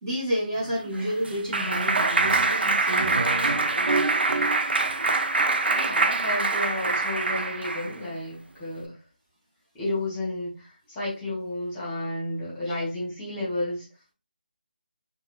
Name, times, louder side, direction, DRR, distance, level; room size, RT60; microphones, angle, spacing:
voice 1, 0.0-3.9 12.7-12.8, equal, 25° right, -6 dB, 1.2 m, -31 dB
Clapping, 0.7-8.0, right 3 dB, 90° right, 0.5 m, -24 dB
voice 2, 5.7-8.9 9.7-13.8, left 1 dB, 15° left, -7 dB, 1.2 m, -32 dB
4.1 x 2.3 x 2.4 m, 0.30 s
figure-of-eight pair, 165°, 5 cm